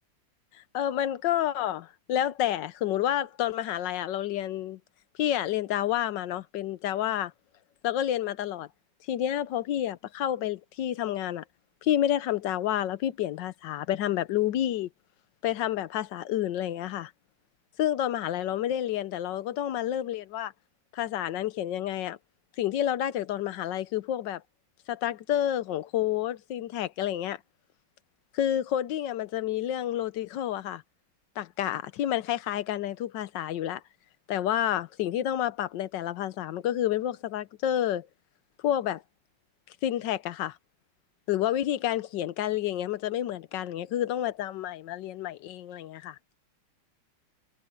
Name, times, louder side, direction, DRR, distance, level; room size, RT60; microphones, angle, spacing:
voice 1, 0.5-4.8 5.2-7.3 7.8-8.7 9.1-11.4 11.8-14.9 15.4-17.1 17.8-20.5 20.9-22.2 22.6-24.4 24.9-27.4 28.3-30.8 31.4-33.8 34.3-38.1 38.6-39.0 39.8-40.6 41.3-46.2, left 11 dB, 70° left, 1.2 m, -29 dB
omnidirectional pair, 2.2 m